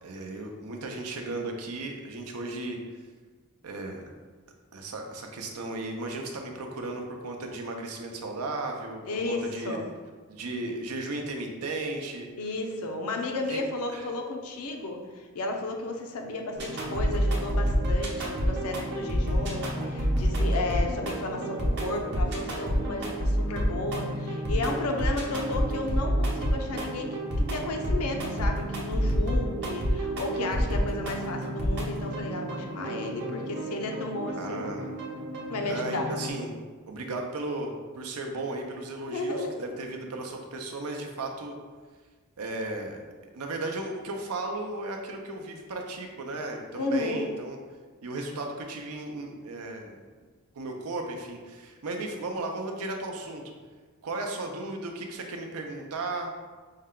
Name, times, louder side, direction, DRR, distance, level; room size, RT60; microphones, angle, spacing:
voice 1, 0.0-2.8 3.6-4.0 4.7-9.8 10.3-12.3 13.5-13.6 13.9-14.1 34.4-34.9 35.6-36.6 36.9-41.6 42.4-43.0 43.3-47.6 48.0-50.0 50.5-53.5 54.0-56.3, right 2 dB, 80° right, 3 dB, 0.6 m, -35 dB
voice 2, 9.0-9.9 12.3-34.8 35.5-36.1 39.1-39.6 46.7-47.3, left 2 dB, 80° left, 3 dB, 0.6 m, -33 dB
sound 1, 16.6-36.3, equal, 50° right, 0.8 m, -29 dB
5.4 x 2.2 x 3.7 m, 1.4 s
head